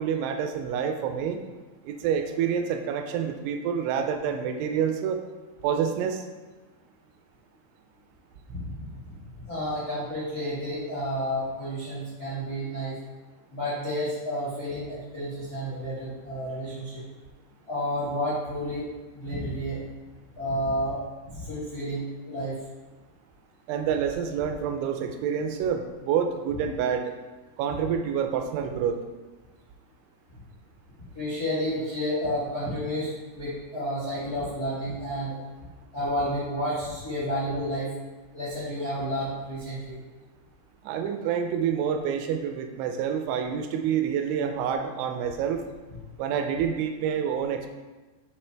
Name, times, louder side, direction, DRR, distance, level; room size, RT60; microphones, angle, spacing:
voice 1, 0.0-1.4 1.8-5.2 5.6-6.3 23.7-27.1 27.6-29.0 40.8-45.6 46.2-47.7, right 7 dB, 85° right, 6 dB, 2.8 m, -27 dB
voice 2, 9.5-12.9 13.5-17.0 17.7-18.8 19.1-19.8 20.3-21.0 21.3-22.5 31.1-35.4 35.9-37.9 38.3-40.0, equal, 85° left, -10 dB, 0.8 m, -31 dB
6.7 x 5.7 x 3.3 m, 1.2 s
omnidirectional pair, 5.5 m